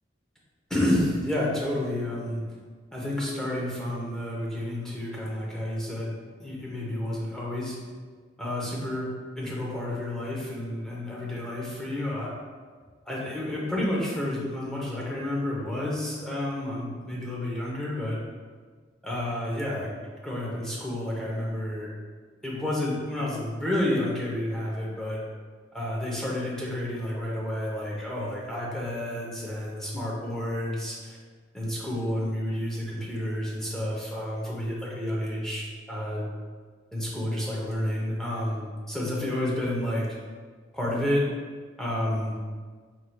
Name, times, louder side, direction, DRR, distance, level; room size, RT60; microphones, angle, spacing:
voice 1, 0.7-2.5 2.9-6.1 6.4-7.8 8.4-12.3 13.1-18.2 19.0-19.9 20.2-21.9 22.4-25.2 25.7-31.2 31.5-36.3 36.9-40.1 40.7-41.3 41.8-42.4, left 1 dB, 5° left, -5 dB, 0.8 m, -30 dB
4.7 x 4.5 x 2.3 m, 1.5 s
head